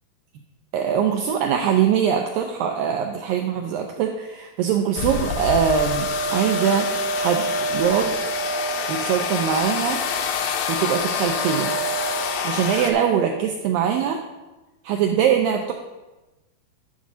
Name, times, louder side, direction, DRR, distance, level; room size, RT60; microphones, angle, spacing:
voice 1, 0.7-8.1 8.9-10.0 10.7-11.7 12.3-14.2 14.8-15.7, right 8 dB, 85° right, 3 dB, 2.0 m, -22 dB
sound 1, 5.0-12.9, left 3 dB, 80° left, 2.0 m, -25 dB
10.5 x 4.0 x 6.2 m, 1.1 s
omnidirectional pair, 4.7 m